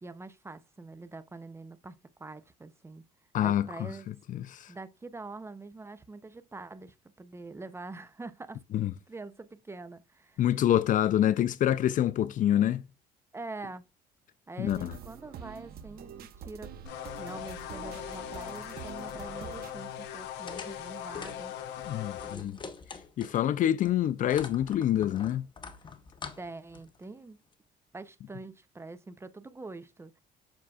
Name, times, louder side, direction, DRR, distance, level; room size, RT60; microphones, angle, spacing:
voice 1, 0.0-3.0 3.4-4.1 4.7-8.6 9.1-10.4 13.3-13.8 14.5-16.7 17.2-21.5 22.2-22.5 26.4-27.4 27.9-30.1, right 3 dB, 15° right, 0.5 m, -44 dB
voice 2, 3.3-3.7 4.3-4.7 8.7-8.9 10.4-12.8 14.6-14.9 21.9-22.6 23.2-25.5, left 11 dB, 50° left, 0.4 m, -26 dB
sound 1, 14.6-19.7, right 8 dB, 65° right, 0.8 m, -46 dB
sound 2, 16.9-22.4, left 10 dB, 90° left, 0.8 m, -40 dB
sound 3, 20.5-23.5 23.8-27.0, left 5 dB, 30° left, 0.8 m, -45 dB
7.5 x 6.0 x 2.3 m
cardioid pair, 110°, 17 cm